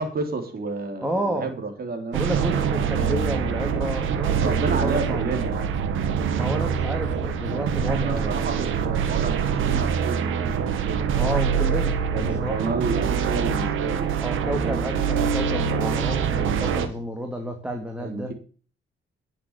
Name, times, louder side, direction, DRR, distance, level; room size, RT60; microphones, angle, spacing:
voice 1, 0.0-3.4 4.3-5.8 7.9-11.2 12.1-14.2 18.0-18.3, right 3 dB, 50° right, 5 dB, 3.6 m, -31 dB
voice 2, 1.0-1.5 2.1-5.2 6.4-8.4 11.2-12.7 14.2-18.3, equal, 5° right, 3 dB, 2.6 m, -31 dB
sound 1, 2.1-16.9, right 7 dB, 80° right, 1.9 m, -24 dB
11.0 x 7.6 x 8.2 m, 0.41 s
cardioid pair, 90°, 20 cm